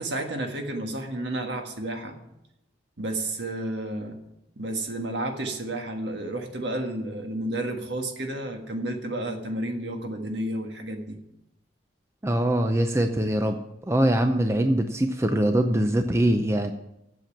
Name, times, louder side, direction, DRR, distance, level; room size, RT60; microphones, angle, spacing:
voice 1, 0.0-2.2 3.0-4.2 4.6-11.2, right 1 dB, 65° right, 4 dB, 1.7 m, -31 dB
voice 2, 12.2-13.6 13.9-16.7, right 1 dB, 15° right, 6 dB, 0.5 m, -23 dB
8.0 x 7.5 x 8.6 m, 0.86 s
head